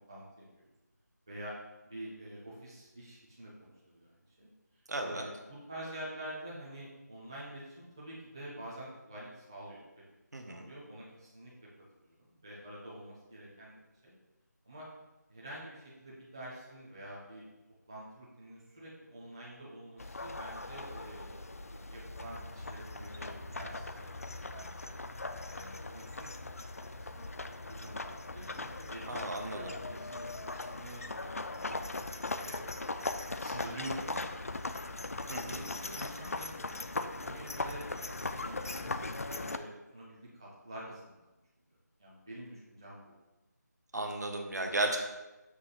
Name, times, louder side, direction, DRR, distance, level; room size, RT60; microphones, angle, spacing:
voice 1, 0.1-0.5 1.3-1.5 1.9-4.5 5.0-9.8 10.4-11.5 12.0-13.7 14.0-14.1 14.6-14.9 15.3-17.4 17.9-25.0 25.5-26.4 26.8-32.5 33.2-34.9 35.3-36.6 37.2-41.3 42.0-43.1, right 1 dB, 15° right, -7 dB, 0.7 m, -47 dB
voice 2, 4.9-5.3 10.3-10.7 29.1-29.7 35.3-35.7 43.9-45.0, right 2 dB, 65° right, 3 dB, 1.1 m, -35 dB
sound 1, 20.0-39.6, left 2 dB, 55° left, 0.4 m, -39 dB
6.2 x 3.0 x 5.7 m, 1.1 s
figure-of-eight pair, 175°, 10 cm